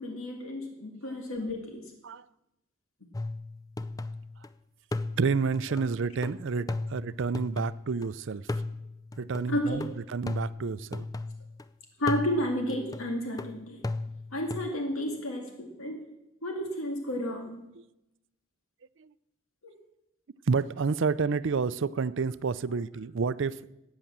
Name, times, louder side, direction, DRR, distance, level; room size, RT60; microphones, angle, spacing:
voice 1, 0.0-1.8 5.7-5.8 9.5-9.8 12.0-13.8 14.3-16.1 16.4-17.6 19.6-19.7, left 1 dB, 85° left, 2.2 m, -32 dB
sound 1, 3.1-4.5 4.9-8.1 8.5-11.6 12.1-14.7, left 2 dB, 15° left, 0.5 m, -36 dB
voice 2, 5.2-8.4 9.2-11.1 19.0-19.1 20.5-23.7, right 5 dB, 60° right, 0.5 m, -29 dB
14.0 x 9.0 x 7.4 m
head